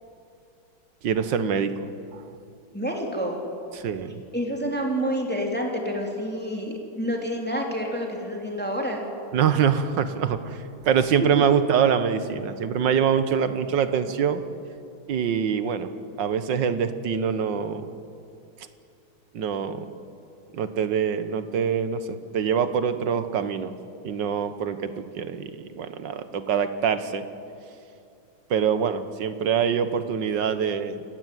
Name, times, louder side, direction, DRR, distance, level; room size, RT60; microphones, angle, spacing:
voice 1, 1.0-1.9 3.7-4.2 9.3-14.4 15.1-15.9 16.2-18.0 19.3-20.0 20.5-23.7 24.0-27.3 28.5-31.0, right 7 dB, 60° right, 11 dB, 1.7 m, -24 dB
voice 2, 2.7-3.4 4.3-9.0 11.3-11.4, equal, 5° left, 0 dB, 3.1 m, -28 dB
28.0 x 15.5 x 9.4 m, 2.5 s
omnidirectional pair, 2.3 m